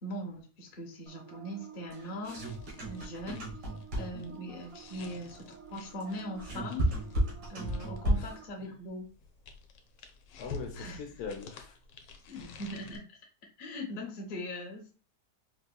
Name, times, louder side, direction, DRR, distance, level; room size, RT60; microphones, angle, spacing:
voice 1, 0.0-2.5 2.8-3.4 4.0-6.9 7.5-9.1 10.7-11.0 12.3-13.0 13.6-14.9, left 1 dB, 40° left, 0 dB, 0.7 m, -40 dB
sound 1, 1.1-8.4, right 8 dB, 65° right, 0.6 m, -52 dB
sound 2, 1.9-4.4 6.0-8.5, right 1 dB, 90° right, 2.0 m, -32 dB
sound 3, 2.4-8.2 9.0-13.0, left 4 dB, 85° left, 1.2 m, -49 dB
voice 2, 4.0-4.3 8.1-8.7 10.4-11.8 12.4-12.6, left 5 dB, 65° left, 3 dB, 1.1 m, -43 dB
4.4 x 2.7 x 2.2 m, 0.36 s
omnidirectional pair, 1.8 m